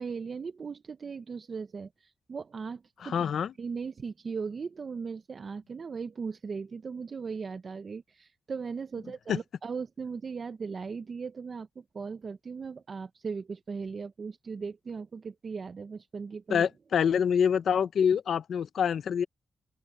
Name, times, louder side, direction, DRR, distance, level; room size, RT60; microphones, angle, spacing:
voice 1, 0.0-3.3 3.6-16.7, right 5 dB, 40° right, 0.5 m, -38 dB
voice 2, 3.0-3.5 9.3-9.4 16.5-19.3, left 7 dB, 65° left, 0.5 m, -26 dB
open air
wide cardioid pair, 155°, 0 cm